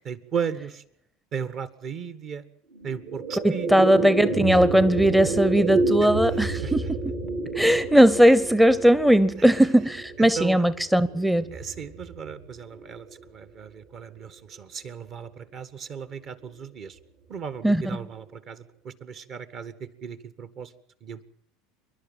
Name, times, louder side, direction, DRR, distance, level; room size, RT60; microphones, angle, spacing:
voice 1, 0.0-0.8 1.3-2.4 2.8-3.9 6.5-6.7 9.4-9.6 10.2-10.6 11.5-17.0 17.3-20.7 21.0-21.2, right 7 dB, 45° right, 1.7 m, -36 dB
sound 1, 2.7-13.2, right 3 dB, 70° right, 4.9 m, -30 dB
voice 2, 3.4-6.8 7.5-11.5 17.6-17.8, equal, 5° right, 0.9 m, -19 dB
27.5 x 11.5 x 9.2 m
hypercardioid pair, 80°, 0 cm